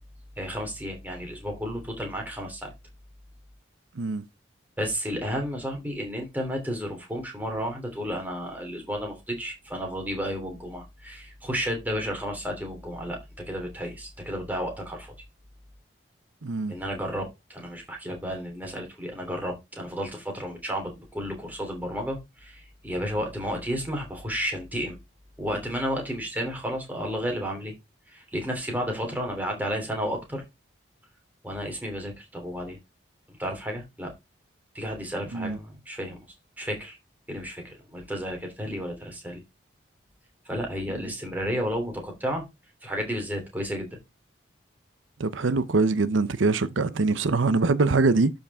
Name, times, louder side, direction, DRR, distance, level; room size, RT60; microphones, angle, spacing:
voice 1, 0.4-2.7 4.8-13.2 13.5-15.1 16.7-25.0 25.4-27.7 28.1-30.4 31.4-32.8 33.4-34.1 34.7-36.2 36.6-37.0 37.3-39.4 40.4-42.4 42.8-43.9, equal, 10° right, 3.0 m, -32 dB
voice 2, 16.4-16.8 35.3-35.6 45.2-48.3, right 3 dB, 85° right, 0.7 m, -23 dB
12.0 x 5.3 x 3.5 m
head